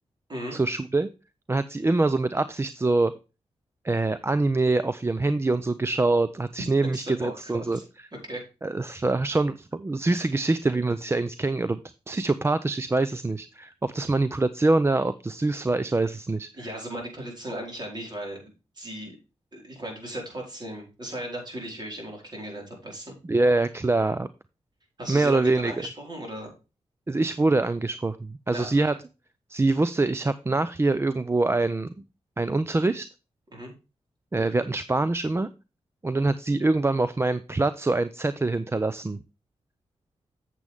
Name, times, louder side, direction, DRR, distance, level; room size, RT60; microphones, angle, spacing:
voice 1, 0.5-1.1 1.5-3.1 3.8-7.8 8.6-11.8 12.1-16.7 23.3-24.3 25.1-25.7 27.1-28.9 29.5-31.9 32.4-33.1 34.3-35.5 36.0-39.2, right 2 dB, 20° right, 13 dB, 0.5 m, -24 dB
voice 2, 6.9-7.8 8.1-8.4 16.5-19.2 19.5-23.1 25.0-26.5 28.5-28.8 33.5-33.7, right 1 dB, 40° right, 0 dB, 4.6 m, -36 dB
8.1 x 7.5 x 3.5 m, 0.30 s
cardioid pair, 75°, 12 cm